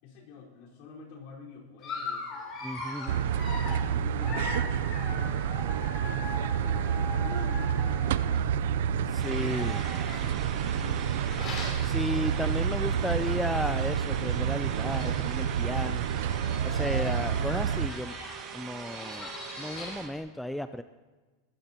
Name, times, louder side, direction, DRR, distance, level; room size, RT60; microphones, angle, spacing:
voice 1, 0.0-2.6 3.1-6.2 6.5-9.6 9.9-11.3, left 4 dB, 55° left, -2 dB, 4.5 m, -48 dB
Dog, 1.8-8.4 9.2-12.8 13.2-13.4 13.6-13.7 14.6-14.7 14.9-15.4 16.1-20.2, left 3 dB, 30° left, 3.5 m, -41 dB
voice 2, 2.6-3.2 9.1-9.8 11.8-16.1 16.6-18.1 18.5-19.3 19.6-20.8, left 1 dB, ahead, 10 dB, 0.4 m, -33 dB
sound 1, 3.1-17.9, right 8 dB, 75° right, 0.5 m, -29 dB
sound 2, 9.2-20.1, right 7 dB, 35° right, 2.0 m, -42 dB
20.0 x 15.0 x 2.9 m, 1.3 s
supercardioid pair, 150°, 0 cm